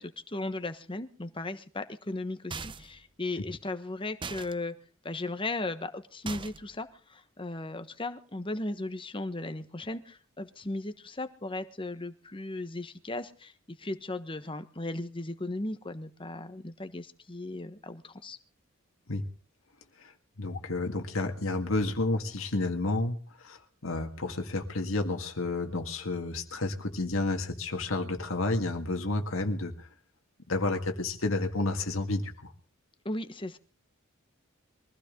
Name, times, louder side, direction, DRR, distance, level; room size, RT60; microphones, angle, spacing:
voice 1, 0.0-4.7 5.0-13.5 13.8-18.4 33.0-33.6, left 2 dB, 25° left, 9 dB, 1.3 m, -36 dB
sound 1, 2.5-3.0 4.2-4.5 6.3-6.8, right 4 dB, 25° right, 0.7 m, -39 dB
voice 2, 20.4-29.9 30.5-32.5, left 2 dB, 75° left, 4 dB, 1.9 m, -31 dB
23.0 x 15.5 x 3.8 m, 0.39 s
head